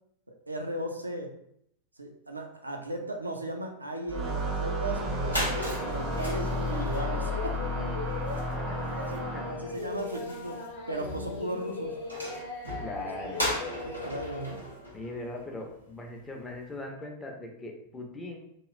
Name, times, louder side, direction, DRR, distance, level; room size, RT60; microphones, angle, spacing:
voice 1, 0.3-1.3 2.0-5.1 5.8-7.6 8.9-9.2 9.5-10.6 10.9-12.0 13.2-13.3 13.8-14.6, right 1 dB, 85° right, 3 dB, 0.4 m, -36 dB
sound 1, 4.1-9.8, equal, 35° right, 0.5 m, -32 dB
sound 2, 4.8-4.9 5.1-15.9, equal, 90° left, 0.8 m, -38 dB
Singing, 5.1-14.5, left 3 dB, 55° left, 0.8 m, -39 dB
voice 2, 9.1-9.5 12.8-13.5 14.9-18.4, left 2 dB, 15° left, 1 dB, 0.6 m, -40 dB
3.0 x 2.3 x 3.1 m, 0.74 s
figure-of-eight pair, 90°, 0 cm